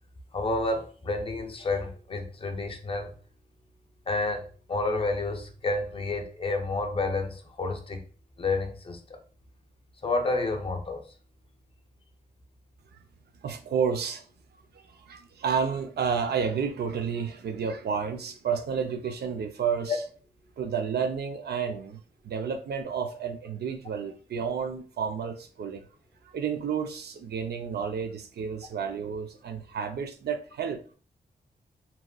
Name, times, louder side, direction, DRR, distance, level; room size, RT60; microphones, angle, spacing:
voice 1, 0.3-3.1 4.1-8.0 8.4-9.2 10.0-11.0 19.9-20.0, left 2 dB, 35° left, 5 dB, 0.5 m, -30 dB
voice 2, 13.4-14.2 15.1-19.9 20.6-25.8 26.3-31.0, right 6 dB, 75° right, 8 dB, 0.4 m, -31 dB
2.8 x 2.4 x 2.2 m, 0.40 s
cardioid pair, 80°, 17 cm